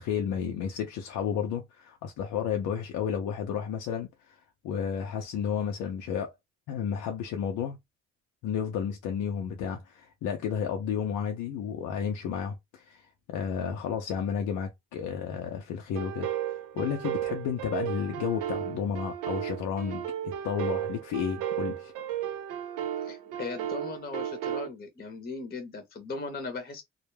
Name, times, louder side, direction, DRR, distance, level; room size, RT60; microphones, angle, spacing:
voice 1, 0.0-4.4 4.6-6.3 6.7-7.8 8.4-21.9, left 7 dB, 85° left, 0.5 m, -32 dB
sound 1, 15.9-24.7, right 10 dB, 90° right, 0.5 m, -34 dB
voice 2, 23.0-26.8, left 4 dB, 30° left, 0.7 m, -38 dB
2.2 x 2.0 x 3.1 m
cardioid pair, 90°, 30 cm